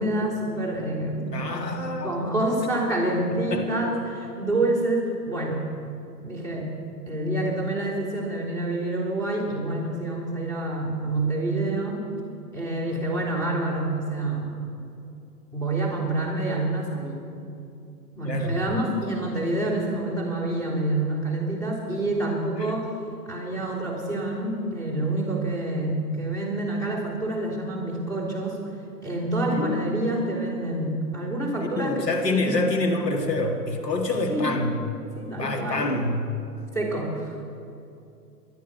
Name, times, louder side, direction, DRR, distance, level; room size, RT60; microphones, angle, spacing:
voice 1, 0.0-5.6 6.2-6.7 7.1-12.1 12.5-14.5 15.5-17.2 18.2-22.9 23.3-28.6 29.0-32.6 34.1-34.5 35.2-36.0 36.7-37.4, right 2 dB, 5° left, -4 dB, 3.5 m, -27 dB
voice 2, 1.3-2.1 3.5-3.9 18.2-18.6 22.6-22.7 29.5-30.0 30.8-30.9 31.8-34.7 35.4-36.3, left 2 dB, 80° left, 2 dB, 2.1 m, -27 dB
20.5 x 12.5 x 5.7 m, 2.7 s
figure-of-eight pair, 115°, 49 cm